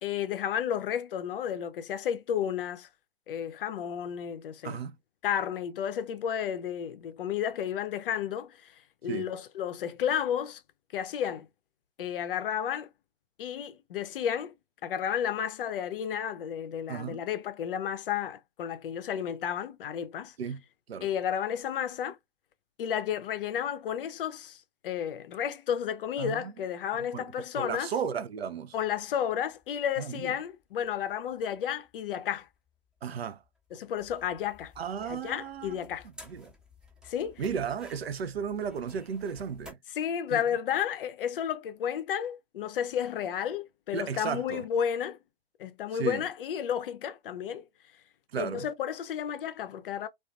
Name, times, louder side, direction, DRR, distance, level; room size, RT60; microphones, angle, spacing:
voice 1, 0.0-2.9 3.3-4.8 5.2-10.6 10.9-11.5 12.0-12.9 13.4-14.5 14.8-20.3 21.0-22.2 22.8-27.9 28.7-32.5 33.7-34.7 35.0-36.1 37.0-37.4 39.9-45.2 45.6-47.6 48.4-50.1, left 9 dB, 65° left, 0.5 m, -32 dB
voice 2, 4.6-4.9 9.1-9.3 16.9-17.2 20.4-20.6 20.9-21.1 26.2-26.5 27.1-27.2 27.6-28.8 30.0-30.3 33.0-33.4 34.8-35.8 36.3-36.5 37.4-39.8 40.3-40.4 43.9-44.6 45.9-46.2 48.3-48.7, right 7 dB, 80° right, 0.5 m, -34 dB
sound 1, 29.0-39.7, left 2 dB, ahead, 0.7 m, -55 dB
2.4 x 2.3 x 2.3 m
figure-of-eight pair, 100°, 30 cm